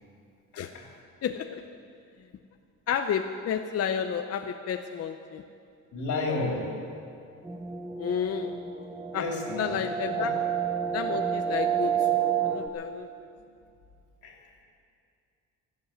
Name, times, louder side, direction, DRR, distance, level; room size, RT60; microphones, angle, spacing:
voice 1, 0.5-0.9 5.9-6.7 9.1-9.8 10.1-10.3 14.2-14.5, left 3 dB, 75° left, 0 dB, 3.3 m, -32 dB
voice 2, 1.2-1.6 2.9-5.4 8.0-8.5 9.1-9.3 9.6-10.4 10.9-12.1 12.4-13.1, left 8 dB, 55° left, 7 dB, 0.7 m, -31 dB
sound 1, 7.4-12.7, right 8 dB, 10° right, 1.1 m, -29 dB
13.5 x 12.5 x 7.9 m, 2.4 s
cardioid pair, 90°, 30 cm